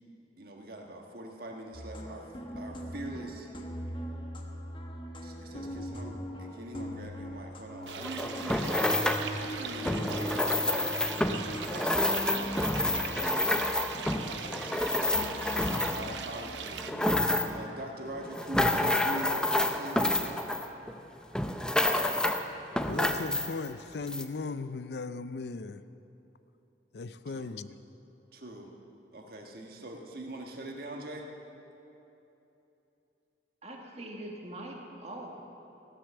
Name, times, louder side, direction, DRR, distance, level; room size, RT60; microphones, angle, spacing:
voice 1, 0.4-2.3 2.6-3.5 5.2-15.3 15.9-20.2 27.3-27.5 28.3-28.7 29.1-31.3, right 1 dB, 55° right, 1.5 m, -43 dB
sound 1, 1.7-16.7, equal, 30° left, 1.1 m, -41 dB
sound 2, 7.9-9.3 9.8-16.2 16.7-17.7 18.2-21.0 21.4-22.5 22.8-23.7 24.1-24.2, left 1 dB, 5° left, 0.5 m, -29 dB
sound 3, 7.9-16.9, right 7 dB, 85° right, 0.8 m, -41 dB
voice 2, 22.9-25.9 26.9-27.7, left 4 dB, 65° left, 0.5 m, -37 dB
voice 3, 33.6-35.5, right 1 dB, 35° right, 1.7 m, -42 dB
15.0 x 10.0 x 7.0 m
head